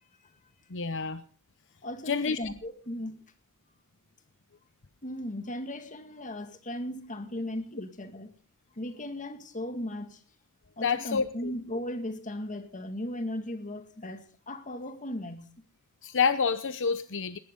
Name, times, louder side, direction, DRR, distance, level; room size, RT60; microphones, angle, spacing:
voice 1, 0.7-1.2 2.1-2.4 10.8-11.5 16.0-17.4, left 5 dB, 60° left, 0.8 m, -28 dB
voice 2, 1.8-3.2 5.0-8.3 8.8-10.2 10.8-15.5, left 1 dB, 35° left, 2.1 m, -37 dB
19.0 x 19.0 x 3.8 m
head